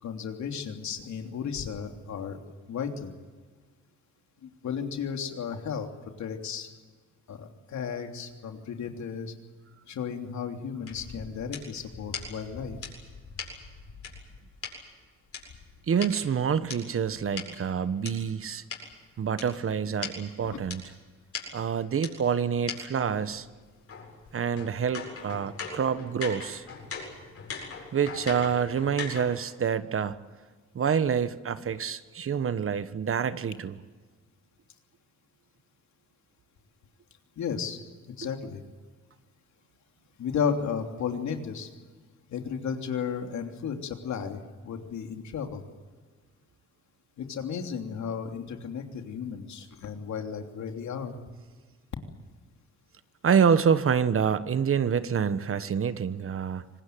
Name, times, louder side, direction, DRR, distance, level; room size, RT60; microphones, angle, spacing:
voice 1, 0.0-2.4 2.7-3.1 4.4-5.9 6.2-6.7 7.3-9.3 9.9-12.8 20.4-20.6 37.4-38.6 40.2-41.7 42.3-45.6 47.2-51.2, left 7 dB, 70° left, 4 dB, 3.2 m, -34 dB
sound 1, 10.9-14.7 15.3-18.1 18.7-18.8 19.4-19.5 19.7-19.8 20.0-20.2 20.7-20.8 21.3-21.4 22.0-22.1 22.7-22.8 23.1-29.4, left 5 dB, 50° left, 7.9 m, -40 dB
voice 2, 15.9-18.6 19.2-20.8 21.5-23.5 24.3-26.6 27.9-30.2 30.7-33.8 53.2-56.6, right 7 dB, 45° right, 13 dB, 1.3 m, -27 dB
25.5 x 20.0 x 9.4 m, 1.4 s
cardioid pair, 90°, 30 cm